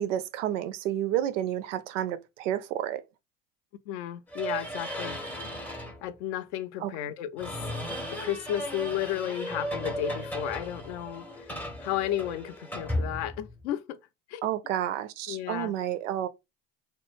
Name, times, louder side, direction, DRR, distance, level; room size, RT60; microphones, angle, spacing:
voice 1, 0.0-3.0 6.8-6.9 14.4-16.3, right 11 dB, 75° right, 0.5 m, -30 dB
voice 2, 3.9-5.2 6.0-7.6 8.2-11.3 11.8-14.0 14.3-14.5 15.3-15.7, left 12 dB, 65° left, 0.5 m, -33 dB
sound 1, 4.3-6.0 7.4-13.6, equal, 5° left, 0.5 m, -35 dB
2.2 x 2.1 x 3.1 m
hypercardioid pair, 70°, 38 cm